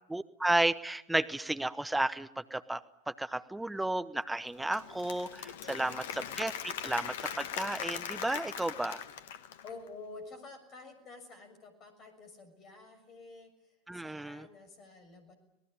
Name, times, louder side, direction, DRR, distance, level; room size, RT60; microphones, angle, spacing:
voice 1, 0.1-9.0 13.9-14.5, right 2 dB, 5° right, 11 dB, 1.0 m, -33 dB
Applause / Crowd, 4.5-9.9, left 9 dB, 55° left, 1.3 m, -40 dB
voice 2, 9.6-13.5 13.9-15.3, left 3 dB, 30° left, 9 dB, 6.6 m, -49 dB
26.5 x 19.5 x 9.6 m, 0.87 s
figure-of-eight pair, 90°, 0 cm